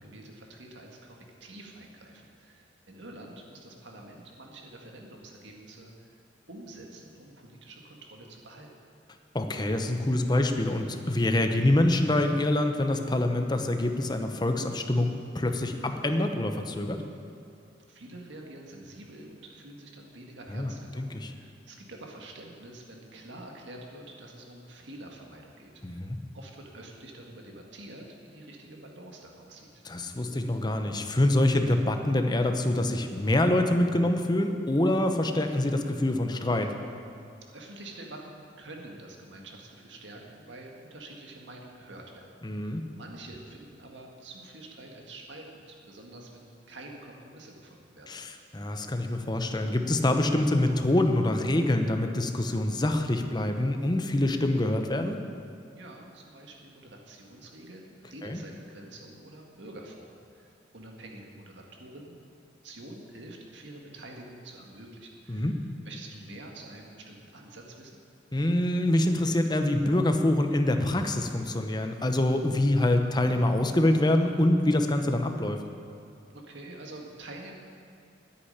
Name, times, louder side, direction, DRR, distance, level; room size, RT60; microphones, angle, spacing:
voice 1, 0.0-8.7 17.9-26.0 26.3-29.7 37.5-48.1 55.7-62.2 62.6-65.5 65.9-68.0 76.3-77.5, right 1 dB, 70° right, 0 dB, 1.8 m, -47 dB
voice 2, 9.3-17.0 20.5-21.3 25.8-26.2 29.8-36.7 42.4-42.8 48.1-55.2 58.2-58.4 65.3-65.5 68.3-75.6, left 1 dB, 20° left, 6 dB, 0.8 m, -25 dB
9.9 x 8.5 x 10.0 m, 2.4 s
head